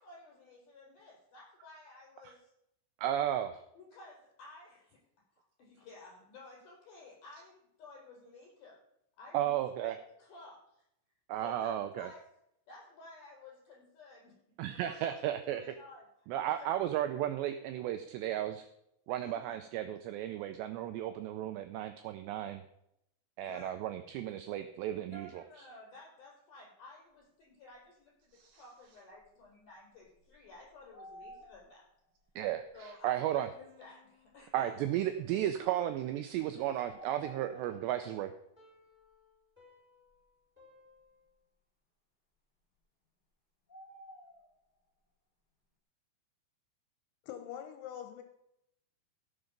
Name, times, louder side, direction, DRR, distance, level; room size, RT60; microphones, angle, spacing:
voice 1, 0.0-2.5 3.8-5.0 5.4-8.8 9.2-10.8 11.4-12.3 12.7-14.4 14.7-15.2 15.5-16.0 16.4-16.7 19.2-19.5 23.4-23.8 25.1-31.8 32.7-34.8, left 2 dB, 45° left, -2 dB, 5.6 m, -54 dB
voice 2, 3.0-3.6 9.3-9.9 11.3-12.1 14.6-15.6 16.3-18.7 19.1-22.6 23.4-25.4 28.3-28.6 32.4-33.5 34.5-38.3, right 12 dB, 90° right, 8 dB, 2.4 m, -34 dB
sound 1, 29.1-29.2 29.9-31.9 32.6-32.7 34.3-34.4 36.7-37.9 43.7-44.5, right 1 dB, 20° left, 1.2 m, -52 dB
Piano, 33.6-41.4, equal, ahead, 3.9 m, -61 dB
voice 3, 47.2-48.2, left 10 dB, 75° left, 7 dB, 3.1 m, -43 dB
16.0 x 7.0 x 5.2 m, 0.77 s
omnidirectional pair, 5.7 m